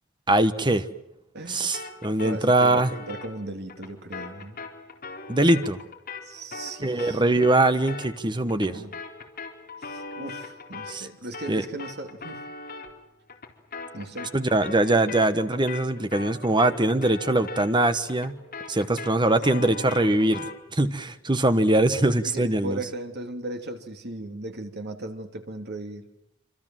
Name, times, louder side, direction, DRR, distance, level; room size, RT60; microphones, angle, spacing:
voice 1, 0.3-0.8 1.5-2.9 5.3-5.8 6.8-8.7 10.9-11.1 11.5-11.6 14.3-18.4 18.7-20.4 20.7-22.8, right 2 dB, 25° right, 1.2 m, -22 dB
voice 2, 1.3-1.7 2.2-4.6 6.2-7.2 8.6-8.9 9.8-12.4 13.9-14.3 19.3-19.4 22.3-26.0, right 2 dB, 55° right, 2.8 m, -37 dB
sound 1, 1.7-11.1 11.3-20.6, left 3 dB, 45° left, 3.9 m, -40 dB
27.0 x 26.5 x 7.6 m
head